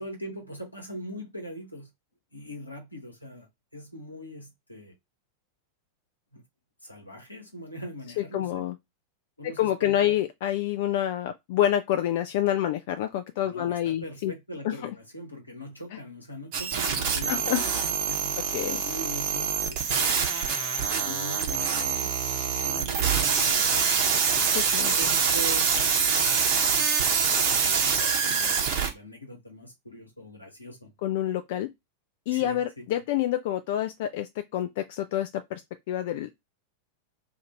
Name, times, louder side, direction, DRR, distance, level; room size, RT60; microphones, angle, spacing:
voice 1, 0.0-1.9 2.3-4.9 6.3-6.4 6.8-8.6 9.4-10.2 13.4-18.4 18.8-20.3 21.0-22.3 22.6-24.2 25.0-30.9 32.3-33.0, equal, 85° left, 1.2 m, -42 dB
voice 2, 8.2-8.7 9.6-14.3 14.6-14.9 17.3-17.6 18.5-18.8 24.5-24.9 31.0-31.7 32.3-35.6 35.9-36.3, left 12 dB, 50° left, 0.3 m, -27 dB
sound 1, 16.5-28.9, right 6 dB, 45° right, 0.8 m, -25 dB
2.6 x 2.5 x 4.2 m
figure-of-eight pair, 90°, 0 cm